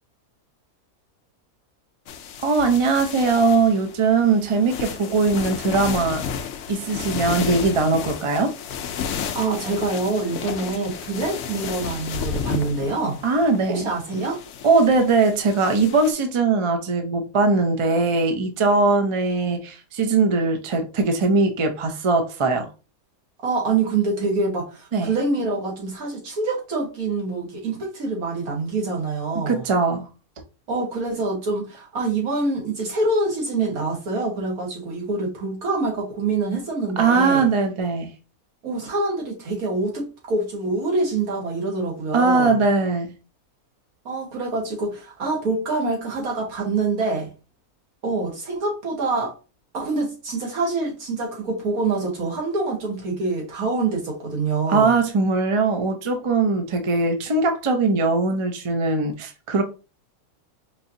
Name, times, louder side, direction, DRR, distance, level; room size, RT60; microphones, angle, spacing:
sound 1, 2.1-16.1, left 7 dB, 65° left, 0.8 m, -32 dB
voice 1, 2.4-6.2 6.7-8.6 13.2-13.9 14.6-22.7 24.9-25.1 29.5-30.1 37.0-38.1 42.1-43.1 54.7-59.6, right 3 dB, 40° right, 0.4 m, -20 dB
voice 2, 9.4-13.2 13.7-14.4 23.4-29.6 30.7-37.5 38.6-42.6 44.1-47.3 48.0-49.4 49.7-54.9, right 3 dB, 80° right, 1.8 m, -25 dB
4.8 x 2.8 x 2.6 m
omnidirectional pair, 1.5 m